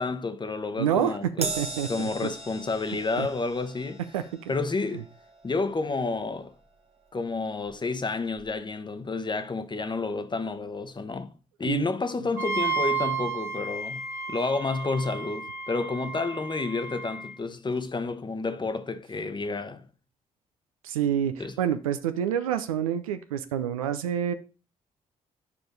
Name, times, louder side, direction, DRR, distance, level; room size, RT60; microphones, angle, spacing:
voice 1, 0.0-1.5 1.9-4.0 4.5-5.0 5.4-6.5 7.1-11.3 11.6-19.9 21.4-21.5, left 3 dB, 25° left, 0.9 m, -30 dB
voice 2, 0.8-2.3 3.2-3.3 4.1-4.2 4.9-5.0 11.6-11.9 20.8-24.3, right 9 dB, 85° right, 0.5 m, -28 dB
Crash cymbal, 1.4-8.0 8.4-8.6 9.6-9.7, right 3 dB, 35° right, 1.5 m, -40 dB
Wind instrument woodwind instrument, 12.4-17.3, right 4 dB, 15° right, 1.2 m, -32 dB
8.4 x 5.0 x 3.9 m
hypercardioid pair, 45°, 17 cm